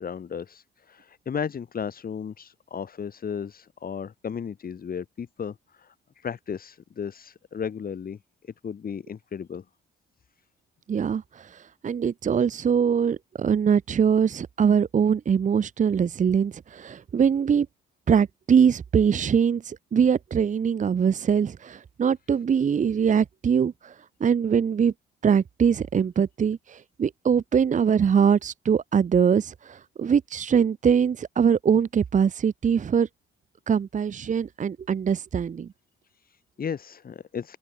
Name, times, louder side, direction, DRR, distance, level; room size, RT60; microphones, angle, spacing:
voice 1, 0.0-8.2 8.4-9.6 36.1-37.6, left 7 dB, 45° left, 4.3 m, -35 dB
voice 2, 10.9-17.7 18.1-23.9 24.2-24.9 25.2-33.1 33.7-35.7, right 7 dB, 40° right, 0.9 m, -22 dB
open air
cardioid pair, 90°, 20 cm